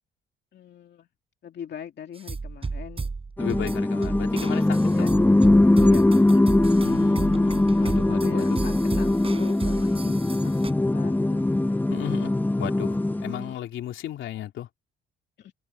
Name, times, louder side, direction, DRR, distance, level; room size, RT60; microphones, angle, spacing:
voice 1, 0.5-1.1 1.4-3.1 4.8-5.2 5.8-6.4 8.1-10.6 10.9-11.4 15.4-15.5, left 9 dB, 60° left, 2.4 m, -41 dB
sound 1, 2.2-10.7, right 4 dB, 30° right, 5.3 m, -34 dB
voice 2, 3.4-5.2 6.8-8.6 11.9-12.3 12.6-14.7, left 12 dB, 80° left, 3.1 m, -35 dB
sound 2, 3.4-13.5, left 2 dB, 10° left, 0.9 m, -21 dB
cardioid pair, 90°, 20 cm